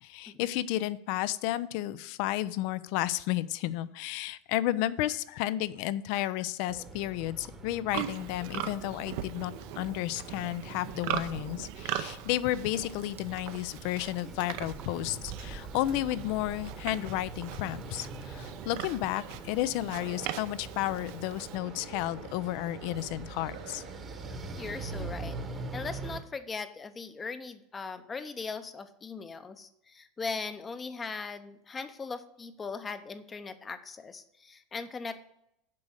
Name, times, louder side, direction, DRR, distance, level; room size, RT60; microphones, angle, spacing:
voice 1, 0.0-23.8, left 14 dB, 60° left, 17 dB, 0.5 m, -32 dB
sound 1, 6.7-26.2, right 3 dB, 25° right, 1.0 m, -43 dB
Livestock farm animals working animals, 7.9-21.6, right 12 dB, 65° right, 0.6 m, -40 dB
sound 2, 19.8-25.0, right 8 dB, 80° right, 1.2 m, -49 dB
voice 2, 24.6-25.4 25.7-35.2, left 4 dB, 20° left, 11 dB, 0.7 m, -39 dB
7.7 x 5.1 x 7.4 m, 0.80 s
supercardioid pair, 130°, 0 cm